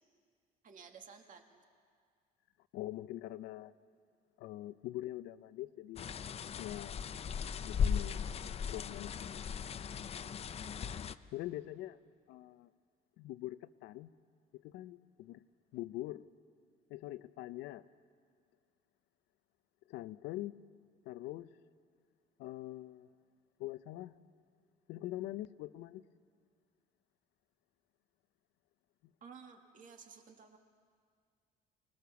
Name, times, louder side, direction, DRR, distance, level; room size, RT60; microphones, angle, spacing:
voice 1, 0.6-1.6 20.3-20.4 29.2-30.6, right 6 dB, 50° right, 4 dB, 2.0 m, -54 dB
voice 2, 2.7-3.7 4.4-6.1 6.6-6.9 7.6-8.3 8.7-9.4 11.3-12.0 12.3-12.7 13.2-14.1 14.5-15.4 15.7-16.2 16.9-17.9 19.9-20.6 21.1-21.5 22.4-23.1 23.6-24.1 24.9-26.0, left 15 dB, 85° left, 14 dB, 0.6 m, -43 dB
sound 1, 6.0-11.1, left 7 dB, 35° left, 0.6 m, -37 dB
25.0 x 20.0 x 7.0 m, 2.1 s
cardioid pair, 110°, 17 cm